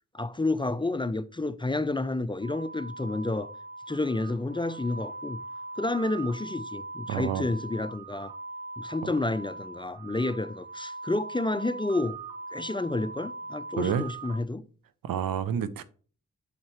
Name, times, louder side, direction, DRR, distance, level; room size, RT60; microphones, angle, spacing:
voice 1, 0.1-3.5 3.9-5.4 5.8-8.3 8.8-12.2 12.5-14.6, left 2 dB, 15° left, 0.4 m, -30 dB
sound 1, 2.4-14.4, right 3 dB, 35° right, 2.1 m, -41 dB
voice 2, 7.1-7.5 9.0-9.1 13.8-14.1 15.0-15.8, right 8 dB, 80° right, 0.6 m, -29 dB
5.9 x 5.7 x 3.0 m
cardioid pair, 40°, 34 cm